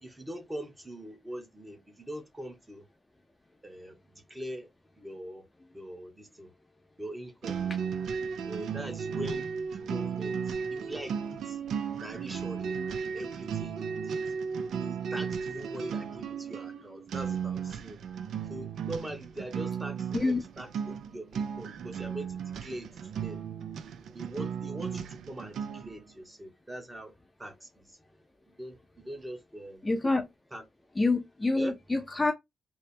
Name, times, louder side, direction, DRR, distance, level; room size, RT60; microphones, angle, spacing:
voice 1, 0.0-2.8 3.6-4.0 4.3-4.7 5.0-5.4 5.7-6.5 7.0-7.6 8.5-9.5 9.7-11.6 12.0-12.9 13.1-14.2 14.8-18.0 18.5-23.4 24.1-27.1 27.4-28.0 28.6-29.9 30.5-30.6 31.5-31.7, right 1 dB, 15° right, 1.1 m, -42 dB
sound 1, 7.4-26.0, right 6 dB, 75° right, 0.4 m, -35 dB
voice 2, 29.8-30.3 31.0-32.3, left 3 dB, 20° left, 0.5 m, -27 dB
3.2 x 2.1 x 4.2 m
cardioid pair, 75°, 0 cm